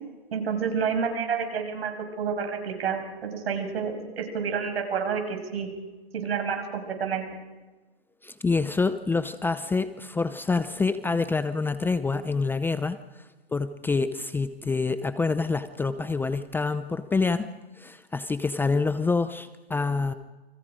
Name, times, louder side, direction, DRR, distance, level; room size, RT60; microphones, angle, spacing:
voice 1, 0.3-5.7 6.1-7.3, right 6 dB, 70° right, 5 dB, 6.6 m, -29 dB
voice 2, 8.2-13.0 13.5-20.1, left 4 dB, 5° left, 12 dB, 0.7 m, -27 dB
29.5 x 26.0 x 5.1 m, 1.2 s
hypercardioid pair, 135°, 31 cm